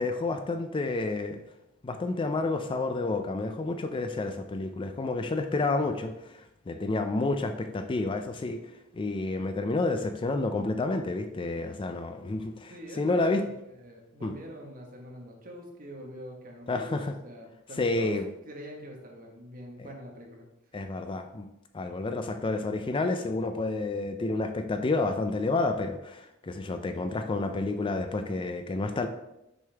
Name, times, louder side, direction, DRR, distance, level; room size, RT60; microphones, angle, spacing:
voice 1, 0.0-1.4 1.8-8.6 8.9-13.4 14.2-14.3 16.7-17.1 17.8-18.3 20.7-21.5 21.7-29.1, left 3 dB, 25° left, 7 dB, 0.4 m, -30 dB
voice 2, 12.7-18.2 18.4-20.5, equal, 45° right, 1 dB, 1.3 m, -44 dB
6.4 x 5.2 x 3.4 m, 0.87 s
head